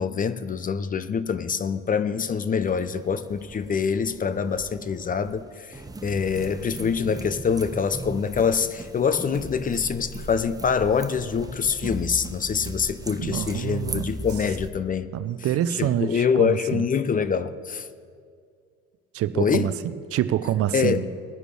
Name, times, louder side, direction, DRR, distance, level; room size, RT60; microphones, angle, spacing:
voice 1, 0.0-15.1 15.8-17.9 19.4-19.7 20.7-21.0, left 6 dB, 30° left, 0.7 m, -25 dB
sound 1, 2.6-14.7, right 2 dB, 10° right, 0.8 m, -38 dB
voice 2, 13.2-14.1 15.1-16.8 19.1-21.3, right 11 dB, 50° right, 0.7 m, -26 dB
20.5 x 10.0 x 3.3 m
hypercardioid pair, 80°, 30 cm